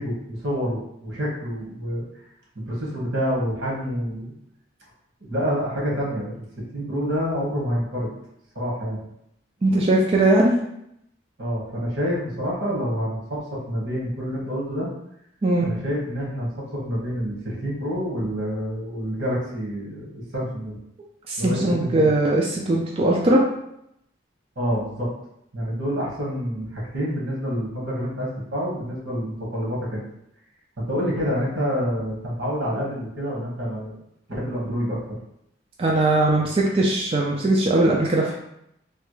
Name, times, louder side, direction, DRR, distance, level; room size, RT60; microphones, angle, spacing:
voice 1, 0.0-2.0 2.5-4.3 5.2-8.1 8.5-9.0 11.4-14.9 15.6-20.8 21.4-22.1 24.5-25.1 25.5-30.0 30.8-33.9 34.3-35.2, equal, 80° right, -4 dB, 1.3 m, -27 dB
voice 2, 9.6-10.6 15.4-15.7 21.3-23.5 35.8-38.3, right 2 dB, 30° right, -2 dB, 0.3 m, -20 dB
3.3 x 2.3 x 3.0 m, 0.78 s
head